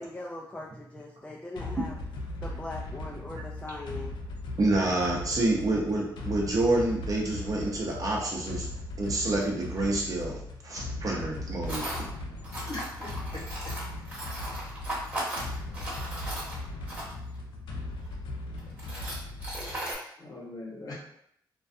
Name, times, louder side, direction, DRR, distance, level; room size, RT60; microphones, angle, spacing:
voice 1, 0.0-2.0 2.4-4.1, left 2 dB, 15° left, -3 dB, 0.3 m, -40 dB
sound 1, 1.6-20.0, left 2 dB, 80° left, 0.4 m, -38 dB
voice 2, 4.6-8.7 9.0-11.9, right 2 dB, 45° right, -2 dB, 0.7 m, -28 dB
Tools, 9.4-9.5 11.7-12.0 12.4-17.4 18.0-18.1 18.6-19.9, right 1 dB, 15° right, 1.0 m, -37 dB
voice 3, 12.7-13.4 20.2-20.9, left 2 dB, 50° left, -4 dB, 0.9 m, -40 dB
2.3 x 2.2 x 2.5 m, 0.71 s
cardioid pair, 95°, 8 cm